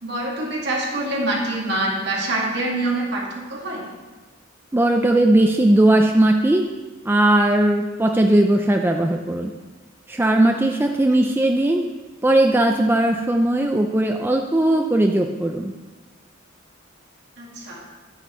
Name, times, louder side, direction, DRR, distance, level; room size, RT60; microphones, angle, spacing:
voice 1, 0.0-3.8 17.4-17.8, right 2 dB, 60° right, -3 dB, 2.1 m, -25 dB
voice 2, 4.7-6.6 7.0-9.5 10.1-11.8 12.2-15.7, right 1 dB, 10° right, 3 dB, 0.4 m, -18 dB
9.8 x 9.2 x 3.1 m, 1.3 s
head